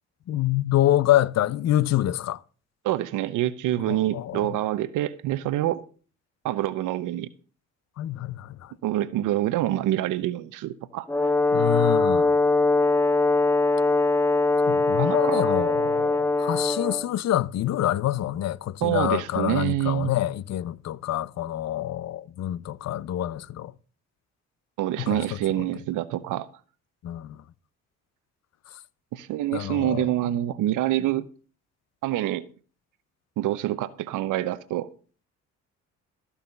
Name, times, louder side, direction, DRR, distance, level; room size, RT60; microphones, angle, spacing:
voice 1, 0.3-2.4 3.9-4.5 8.0-8.7 11.5-12.3 14.7-23.7 25.0-25.2 27.0-27.4 29.5-30.1, left 13 dB, 60° left, 0.6 m, -26 dB
voice 2, 2.8-5.8 6.4-7.3 8.8-11.1 14.9-15.4 18.8-20.1 24.8-26.5 29.1-31.3 32.0-32.5 33.4-34.9, right 13 dB, 85° right, 0.8 m, -26 dB
Brass instrument, 11.1-17.1, left 3 dB, 10° left, 0.5 m, -22 dB
14.0 x 5.7 x 6.7 m
cardioid pair, 90°, 30 cm